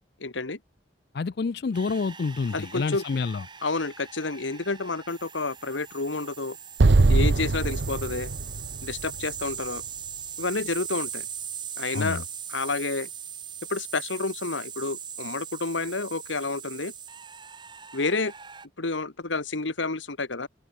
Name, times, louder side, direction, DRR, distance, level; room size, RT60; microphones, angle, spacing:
voice 1, 0.2-0.6 2.5-3.0 3.6-6.6 7.1-8.3 8.8-9.8 10.4-11.3 11.8-12.2 12.5-13.1 13.7-16.9 17.9-18.3 18.8-20.5, left 3 dB, 85° left, 1.6 m, -29 dB
voice 2, 1.1-3.4 11.9-12.2, left 4 dB, 55° left, 0.4 m, -28 dB
sound 1, 1.7-18.7, right 8 dB, 25° right, 2.4 m, -40 dB
Explosion, 6.8-10.1, right 3 dB, 75° right, 0.7 m, -22 dB
open air
head